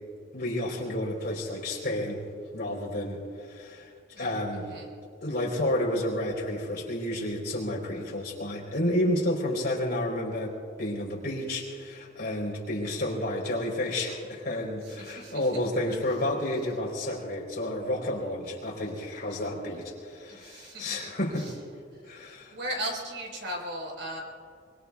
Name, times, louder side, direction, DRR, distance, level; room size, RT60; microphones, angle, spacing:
voice 1, 0.3-2.2 2.5-3.9 4.2-4.7 5.2-21.5 22.0-22.5, left 1 dB, 55° left, -2 dB, 3.9 m, -31 dB
voice 2, 4.1-4.9 14.8-15.5 20.3-21.0 21.3-21.6 21.9-24.2, right 1 dB, 75° right, 0 dB, 4.7 m, -38 dB
24.5 x 24.5 x 2.4 m, 2.3 s
head